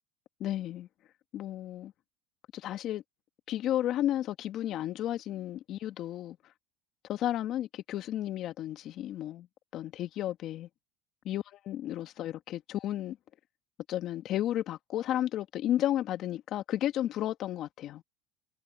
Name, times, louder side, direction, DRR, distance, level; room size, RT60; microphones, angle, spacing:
voice 1, 0.4-0.9 1.3-1.9 2.5-3.0 3.5-6.4 7.1-9.5 9.7-10.7 11.2-13.2 13.9-18.0, left 12 dB, 45° left, 1.9 m, -33 dB
supercardioid pair, 120°, 0 cm